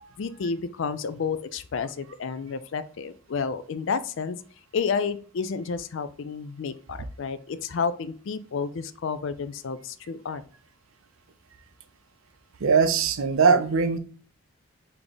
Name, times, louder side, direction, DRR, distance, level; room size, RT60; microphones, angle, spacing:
voice 1, 0.2-4.4 4.7-10.4, left 5 dB, 60° left, 13 dB, 0.4 m, -30 dB
voice 2, 12.6-14.0, right 5 dB, 65° right, 9 dB, 0.5 m, -20 dB
3.5 x 3.4 x 3.9 m, 0.42 s
head